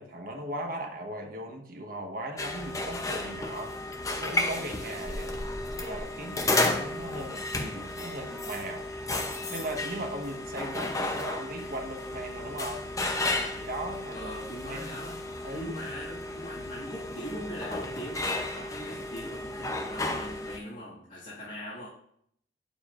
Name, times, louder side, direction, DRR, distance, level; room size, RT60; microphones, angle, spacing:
voice 1, 0.0-3.7 4.1-5.4 5.7-8.9 9.5-12.8 13.5-14.8 15.4-15.8, right 1 dB, 50° right, 2 dB, 1.2 m, -38 dB
sound 1, 2.4-20.6, left 2 dB, 15° left, 0.7 m, -33 dB
voice 2, 14.1-15.2 15.5-21.9, equal, 45° left, -8 dB, 2.0 m, -41 dB
8.9 x 7.1 x 2.5 m, 0.67 s
head